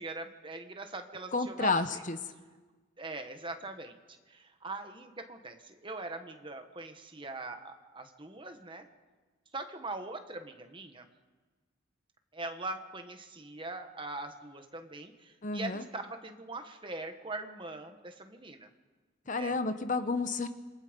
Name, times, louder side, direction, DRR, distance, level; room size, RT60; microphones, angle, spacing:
voice 1, 0.0-2.0 3.0-8.8 9.5-11.1 12.3-18.7 19.2-19.6, right 2 dB, 25° right, 6 dB, 1.5 m, -42 dB
voice 2, 1.3-2.2 15.4-15.8 19.3-20.5, left 3 dB, 40° left, 10 dB, 1.0 m, -30 dB
27.0 x 23.5 x 5.3 m, 1.3 s
head